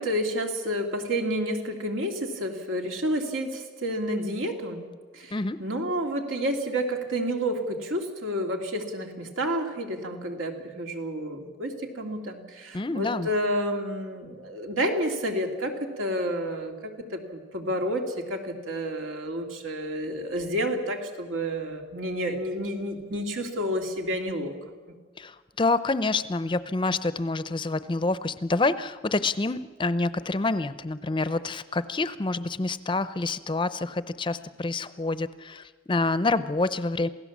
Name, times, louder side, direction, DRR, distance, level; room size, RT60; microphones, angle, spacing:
voice 1, 0.0-4.9 5.1-24.5, equal, 90° right, 3 dB, 2.7 m, -30 dB
voice 2, 12.7-13.3 25.2-37.1, left 3 dB, 25° left, 14 dB, 0.5 m, -27 dB
27.5 x 16.5 x 7.3 m, 1.5 s
head